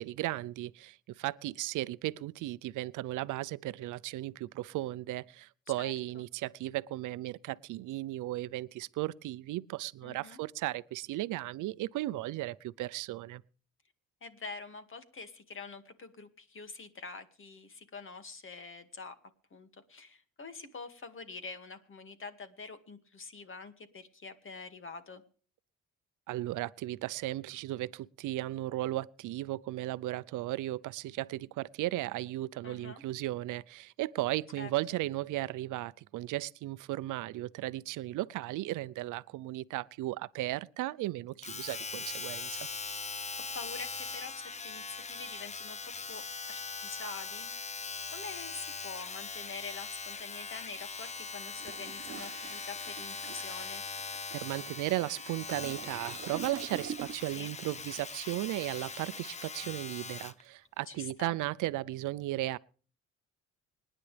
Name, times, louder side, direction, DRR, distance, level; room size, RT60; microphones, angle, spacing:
voice 1, 0.0-13.4 26.3-42.7 54.3-62.6, right 16 dB, 90° right, 0.6 m, -36 dB
voice 2, 10.0-10.4 14.2-19.2 19.5-25.2 32.6-33.0 34.6-34.7 43.5-47.8 48.1-53.8 57.4-57.5 60.9-61.3, left 4 dB, 45° left, 2.1 m, -46 dB
Domestic sounds home sounds, 41.4-60.4 61.1-61.2, left 5 dB, 25° left, 0.6 m, -41 dB
Toilet flush, 51.4-57.4 57.7-58.0, right 8 dB, 45° right, 1.0 m, -46 dB
26.0 x 10.0 x 3.4 m
cardioid pair, 90°, 30 cm